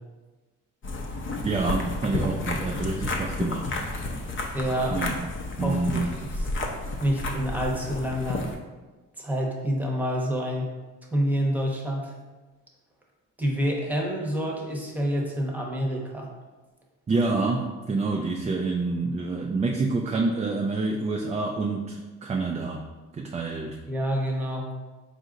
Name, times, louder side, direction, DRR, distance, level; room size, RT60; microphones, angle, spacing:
sound 1, 0.8-8.6, left 2 dB, 40° left, 0.6 m, -31 dB
voice 1, 1.4-3.7 4.9-5.1 5.6-6.1 17.1-22.8 23.1-23.8, right 3 dB, 20° right, 1 dB, 0.3 m, -27 dB
voice 2, 4.5-5.0 5.6-6.0 6.4-6.5 7.0-8.5 9.2-10.7 11.1-12.1 13.4-16.3 23.9-24.7, equal, 5° right, -1 dB, 0.9 m, -27 dB
4.2 x 2.5 x 3.8 m, 1.3 s
cardioid pair, 90°, 30 cm